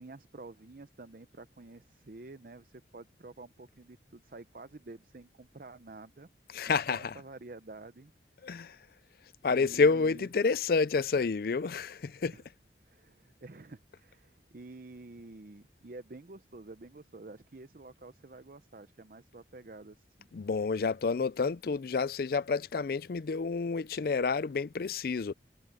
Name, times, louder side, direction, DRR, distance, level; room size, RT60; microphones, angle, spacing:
voice 1, 0.0-6.3 6.7-8.1 9.5-10.3 12.3-12.4 12.9-20.3, right 2 dB, 50° right, 0.7 m, -49 dB
voice 2, 6.5-7.2 8.4-8.8 9.4-12.4 20.3-25.3, left 4 dB, 55° left, 0.4 m, -29 dB
head